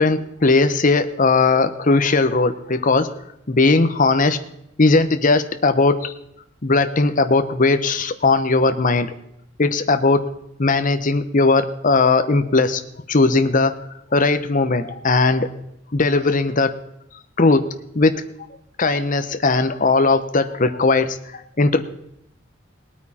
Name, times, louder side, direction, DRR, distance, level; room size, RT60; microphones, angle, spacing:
voice 1, 0.0-3.1 3.5-4.4 4.8-6.1 6.6-9.1 9.6-10.2 10.6-12.8 13.1-13.7 14.1-15.5 15.9-16.7 17.4-17.6 17.9-18.1 18.8-21.8, left 3 dB, 45° left, 9 dB, 0.9 m, -18 dB
19.5 x 9.0 x 4.3 m, 0.79 s
head